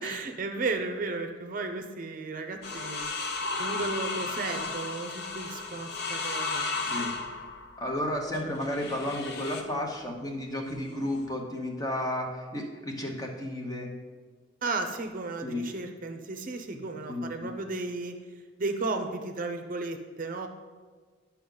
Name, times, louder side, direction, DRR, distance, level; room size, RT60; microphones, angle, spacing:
voice 1, 0.0-3.1 3.6-6.7 14.6-18.1 18.6-20.5, right 3 dB, 45° right, 5 dB, 0.6 m, -34 dB
sound 1, 2.6-9.7 10.7-11.3, left 3 dB, 55° left, 0.7 m, -34 dB
voice 2, 7.8-13.9 15.4-15.6 16.7-16.8 17.1-17.5, left 1 dB, 20° left, 1 dB, 0.9 m, -33 dB
10.0 x 5.7 x 3.9 m, 1.5 s
head